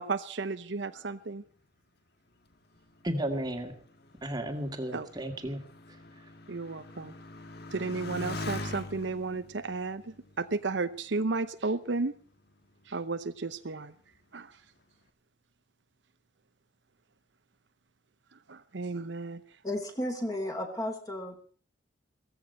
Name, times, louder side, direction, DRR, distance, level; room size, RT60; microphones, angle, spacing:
voice 1, 0.0-1.4 4.9-5.1 6.5-7.1 7.7-12.1 12.9-13.9 14.3-14.6 18.5-19.4, right 3 dB, 65° right, 11 dB, 0.8 m, -33 dB
Motorcycle, 2.5-11.5 12.3-12.8, left 2 dB, 55° left, 1.6 m, -44 dB
voice 2, 3.0-3.7 4.2-5.6, right 1 dB, 20° right, 5 dB, 2.0 m, -33 dB
voice 3, 19.6-21.5, left 1 dB, 20° left, 4 dB, 3.1 m, -34 dB
16.5 x 15.0 x 5.6 m, 0.43 s
head